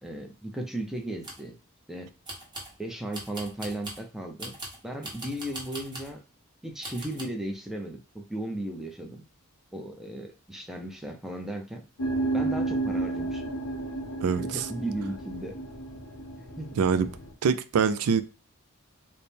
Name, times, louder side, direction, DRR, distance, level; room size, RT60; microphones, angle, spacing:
voice 1, 0.0-1.6 1.9-2.1 2.8-4.6 4.8-6.2 6.6-9.2 9.7-11.8 12.3-13.4 14.3-15.5 16.3-16.7, right 1 dB, ahead, 0.5 m, -36 dB
sound 1, 1.0-1.5 2.2-2.8 3.1-4.1 4.4-6.1 6.8-7.2, right 1 dB, 20° right, 1.2 m, -41 dB
sound 2, 12.0-17.3, right 2 dB, 70° left, 0.8 m, -32 dB
voice 2, 14.2-14.7 16.8-17.1 17.4-18.2, right 6 dB, 80° right, 0.4 m, -24 dB
4.2 x 2.1 x 3.4 m
head